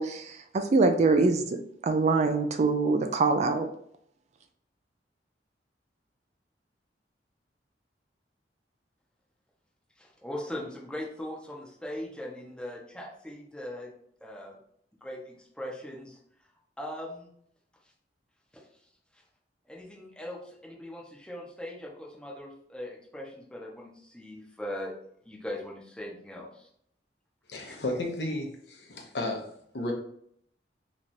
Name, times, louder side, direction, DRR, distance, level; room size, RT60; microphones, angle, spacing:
voice 1, 0.0-3.7, right 3 dB, 40° right, 7 dB, 0.3 m, -24 dB
voice 2, 10.0-13.9 14.2-14.6 15.0-16.2 16.8-17.3 18.5-18.6 19.1-19.2 19.7-24.9 25.2-26.7 27.7-27.8, left 1 dB, 5° left, -3 dB, 0.8 m, -40 dB
voice 3, 27.5-29.5 29.7-29.9, left 1 dB, 65° left, 1 dB, 0.9 m, -33 dB
3.1 x 2.5 x 4.1 m, 0.67 s
head